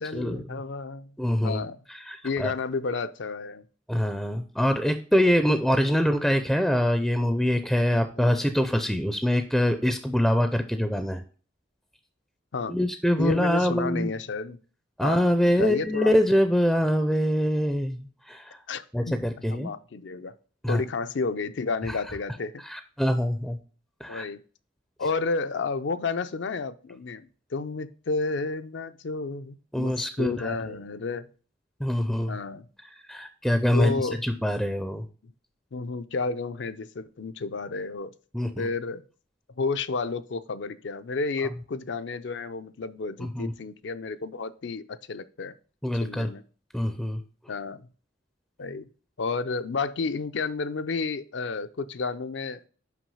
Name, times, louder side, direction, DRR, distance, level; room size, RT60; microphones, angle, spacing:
voice 1, 0.0-1.1 1.4-1.8 2.2-3.7 8.2-8.4 12.5-12.7 13.2-14.6 15.0-16.1 18.7-20.3 20.7-22.5 24.1-24.4 25.0-31.3 32.3-32.7 33.7-34.2 35.2-35.3 35.7-38.1 38.6-39.0 39.6-45.5 46.0-46.4 47.5-47.9 48.6-48.9 49.2-52.7, left 4 dB, 70° left, 11 dB, 0.5 m, -31 dB
voice 2, 1.2-1.6 2.1-2.5 3.9-11.2 12.7-14.1 15.0-18.6 18.9-19.7 20.6-20.8 21.9-22.0 22.6-23.6 24.0-24.3 29.7-30.6 31.8-32.4 33.1-35.0 38.3-38.7 43.2-43.5 45.8-46.3 46.7-47.2, equal, ahead, 8 dB, 0.4 m, -24 dB
6.0 x 5.3 x 5.5 m, 0.40 s
head